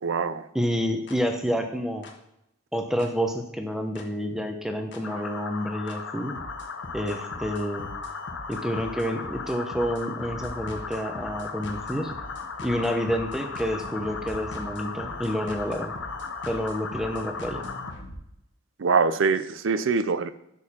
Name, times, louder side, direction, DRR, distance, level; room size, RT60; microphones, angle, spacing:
voice 1, 0.0-0.5 18.8-20.3, right 5 dB, 80° right, 13 dB, 0.5 m, -24 dB
voice 2, 0.5-2.0 2.7-6.3 6.9-7.9 8.5-12.1 12.6-15.9 16.5-17.7, equal, ahead, 5 dB, 0.7 m, -29 dB
sound 1, 1.1-1.2 2.0-2.1 3.0-3.1 4.0-4.1 4.9-5.0 5.9-6.0 6.4-18.2, left 1 dB, 60° left, 1.2 m, -43 dB
sound 2, 5.0-17.9, left 4 dB, 80° left, 0.7 m, -36 dB
7.1 x 6.4 x 4.3 m, 0.82 s
head